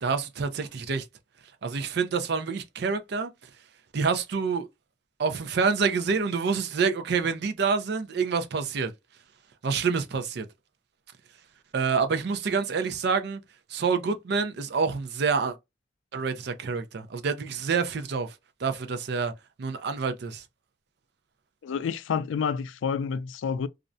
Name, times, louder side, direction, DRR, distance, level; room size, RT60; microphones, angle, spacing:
voice 1, 0.0-1.0 1.6-3.3 3.9-4.7 5.2-8.9 9.6-10.4 11.7-13.4 13.7-15.6 16.1-18.3 18.6-19.3 19.6-20.4, right 5 dB, 60° right, 0.5 m, -27 dB
voice 2, 21.6-23.7, left 6 dB, 85° left, 0.3 m, -29 dB
2.5 x 2.1 x 2.5 m
head